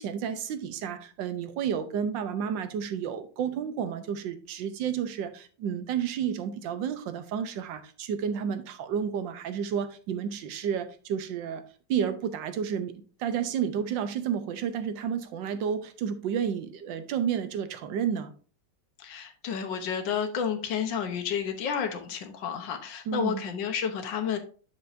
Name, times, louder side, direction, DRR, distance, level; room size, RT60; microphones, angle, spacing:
voice 1, 0.0-11.6 11.9-12.9 13.2-18.3 23.1-23.4, right 8 dB, 90° right, 1.5 m, -31 dB
voice 2, 19.0-24.4, left 7 dB, 85° left, 1.7 m, -31 dB
7.2 x 6.9 x 2.6 m
omnidirectional pair, 2.0 m